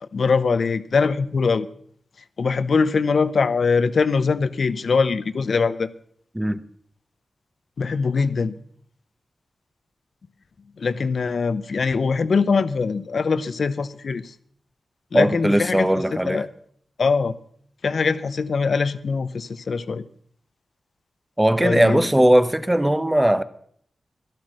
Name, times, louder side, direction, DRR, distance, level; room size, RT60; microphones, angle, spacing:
voice 1, 0.0-1.7 2.4-5.9 7.8-8.6 10.8-14.3 15.1-16.5 17.0-17.3 17.8-20.1 21.6-22.0, left 4 dB, 70° left, 0.7 m, -22 dB
voice 2, 15.1-16.4 21.4-23.4, right 1 dB, 10° right, 0.9 m, -19 dB
12.5 x 12.0 x 6.3 m
cardioid pair, 50°, 0 cm